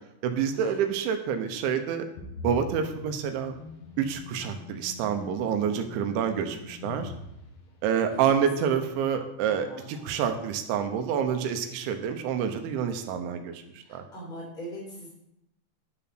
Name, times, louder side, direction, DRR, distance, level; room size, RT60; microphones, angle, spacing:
voice 1, 0.2-2.1 2.4-3.6 4.0-7.1 7.8-13.6 13.9-14.0, right 7 dB, 80° right, 7 dB, 3.3 m, -28 dB
sound 1, 2.2-8.1, left 3 dB, 60° left, 2.8 m, -43 dB
voice 2, 9.5-10.2 13.9-15.1, right 1 dB, 10° left, -3 dB, 4.0 m, -41 dB
11.0 x 7.7 x 6.0 m, 0.83 s
omnidirectional pair, 5.4 m